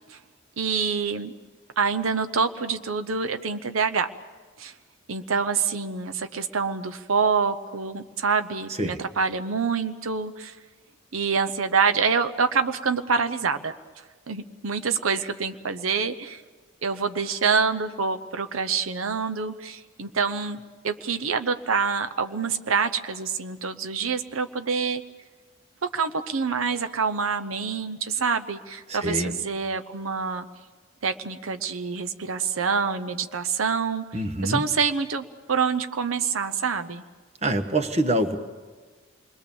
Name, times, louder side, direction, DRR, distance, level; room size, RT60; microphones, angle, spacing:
voice 1, 0.6-1.3 1.8-4.1 4.6-4.7 5.1-10.6 11.1-13.7 14.3-16.4 16.8-25.0 25.8-30.5 31.0-37.0, right 5 dB, 85° right, 9 dB, 0.8 m, -26 dB
voice 2, 28.9-29.3 34.1-34.6 37.4-38.4, right 1 dB, 30° right, 8 dB, 1.2 m, -25 dB
28.0 x 21.5 x 7.1 m, 1.4 s
head